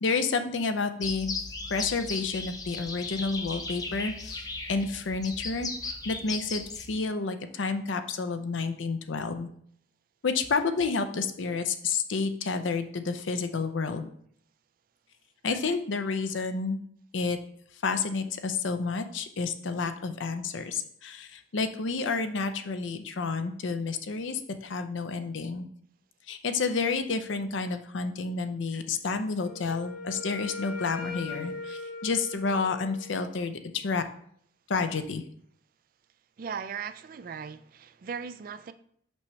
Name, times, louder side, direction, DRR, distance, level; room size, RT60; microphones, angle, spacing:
voice 1, 0.0-1.3 1.7-4.4 4.7-9.5 10.2-14.1 15.4-16.8 17.1-17.4 17.8-25.7 26.3-34.0 34.7-35.2, left 4 dB, 80° left, 0.6 m, -30 dB
sound 1, 1.0-6.9, left 3 dB, 20° left, 0.5 m, -37 dB
Wind instrument woodwind instrument, 29.4-33.3, left 3 dB, 45° left, 1.0 m, -40 dB
voice 2, 36.4-38.7, right 6 dB, 45° right, 0.3 m, -38 dB
6.1 x 5.6 x 3.2 m
head